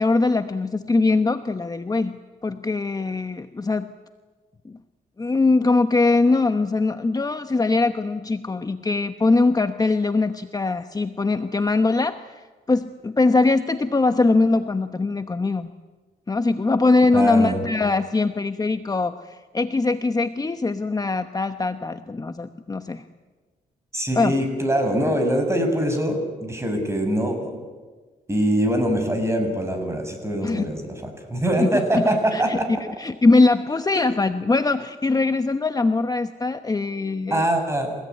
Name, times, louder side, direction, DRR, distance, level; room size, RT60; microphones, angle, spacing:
voice 1, 0.0-2.2 2.4-3.9 5.2-12.2 12.7-15.7 16.3-23.0 24.1-24.3 30.4-30.6 31.6-37.5, left 3 dB, 25° left, 8 dB, 1.0 m, -22 dB
voice 2, 17.1-17.6 23.9-27.6 28.3-32.8 37.3-38.0, right 1 dB, 15° right, 5 dB, 7.0 m, -23 dB
29.0 x 17.0 x 9.5 m, 1.3 s
cardioid pair, 85°, 16 cm